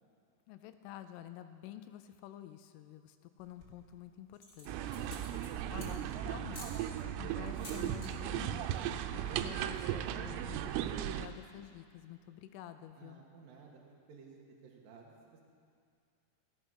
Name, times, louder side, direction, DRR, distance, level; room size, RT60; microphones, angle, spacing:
voice 1, 0.5-5.0 5.5-13.2, left 11 dB, 85° left, 10 dB, 3.1 m, -50 dB
sound 1, 3.4-3.9 4.3-6.1 6.5-6.8 7.5-8.1 8.4-8.7 9.0-9.1 9.3-9.7, left 2 dB, 30° left, 1.5 m, -51 dB
sound 2, 4.7-11.3, right 11 dB, 90° right, 3.3 m, -37 dB
voice 2, 13.0-13.8 14.1-15.4, right 5 dB, 65° right, -1 dB, 2.4 m, -55 dB
16.5 x 13.5 x 6.4 m, 2.3 s
omnidirectional pair, 5.8 m